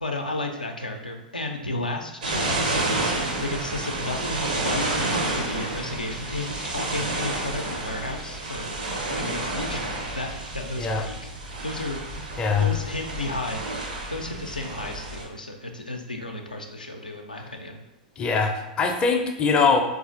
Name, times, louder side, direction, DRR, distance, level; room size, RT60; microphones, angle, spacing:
voice 1, 0.0-12.0 12.6-13.6 14.1-17.8, left 2 dB, 90° left, 2 dB, 0.4 m, -33 dB
sound 1, 2.2-15.2, right 2 dB, 75° right, 0.7 m, -30 dB
voice 2, 12.4-12.7 18.2-19.8, left 5 dB, 20° left, 3 dB, 0.4 m, -22 dB
4.1 x 2.4 x 2.5 m, 0.95 s
figure-of-eight pair, 95°, 4 cm